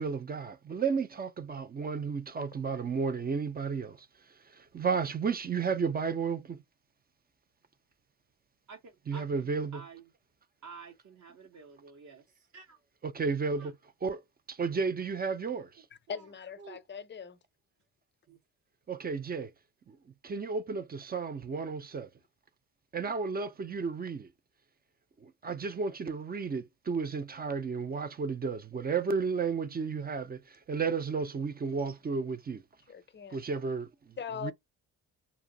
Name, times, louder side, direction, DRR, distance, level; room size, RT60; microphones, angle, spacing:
voice 1, 0.0-4.1 4.5-6.6 9.1-9.8 13.0-13.7 14.0-14.2 14.5-15.8 18.9-19.5 19.9-20.0 20.2-22.1 22.9-24.3 25.2-32.6 33.3-34.1 34.4-34.5, right 5 dB, 25° right, 0.4 m, -33 dB
voice 2, 8.7-10.0 10.6-12.8 13.6-13.7 16.1-16.2 16.6-16.8 18.3-18.4, right 5 dB, 40° right, 0.8 m, -50 dB
voice 3, 16.1-17.4 32.9-33.4 34.2-34.5, left 7 dB, 25° left, 0.6 m, -40 dB
2.5 x 2.0 x 3.7 m
supercardioid pair, 55°, 42 cm